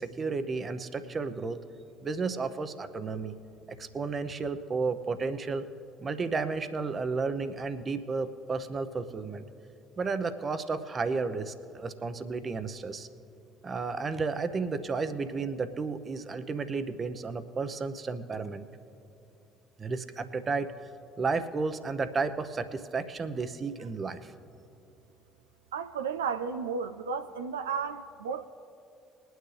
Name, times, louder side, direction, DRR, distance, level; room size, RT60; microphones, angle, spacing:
voice 1, 0.0-1.6 2.0-3.3 3.7-5.7 6.0-9.5 10.0-13.1 13.6-18.6 19.8-20.7 21.2-24.3, right 4 dB, 35° right, 10 dB, 0.8 m, -32 dB
voice 2, 25.7-28.5, right 6 dB, 85° right, 9 dB, 0.3 m, -33 dB
21.5 x 9.3 x 3.3 m, 2.7 s
hypercardioid pair, 55°, 0 cm